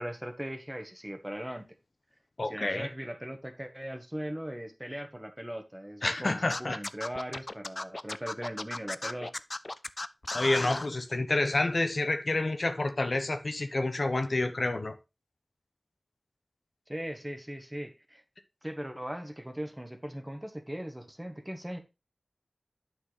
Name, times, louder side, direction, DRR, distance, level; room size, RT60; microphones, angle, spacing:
voice 1, 0.0-1.6 2.4-9.3 16.9-18.2 18.6-21.8, equal, 15° right, 1.3 m, -39 dB
voice 2, 2.4-2.9 6.0-6.8 10.3-14.9, left 2 dB, 65° left, 0.9 m, -29 dB
Scratching (performance technique), 6.5-10.9, left 2 dB, 50° left, 0.4 m, -36 dB
9.9 x 6.0 x 3.3 m
wide cardioid pair, 55°, 0 cm